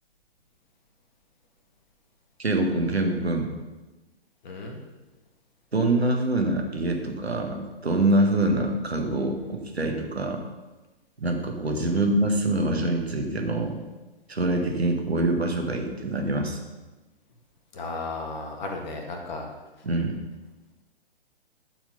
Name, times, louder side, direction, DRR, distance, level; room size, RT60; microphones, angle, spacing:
voice 1, 2.4-3.5 5.7-10.4 11.2-13.8 14.3-16.6 19.8-20.2, right 2 dB, 85° right, 2 dB, 1.7 m, -25 dB
voice 2, 4.4-4.8 11.9-12.0 17.7-19.5, left 3 dB, 45° left, 1 dB, 1.8 m, -34 dB
11.0 x 4.7 x 5.4 m, 1.2 s
figure-of-eight pair, 125°, 31 cm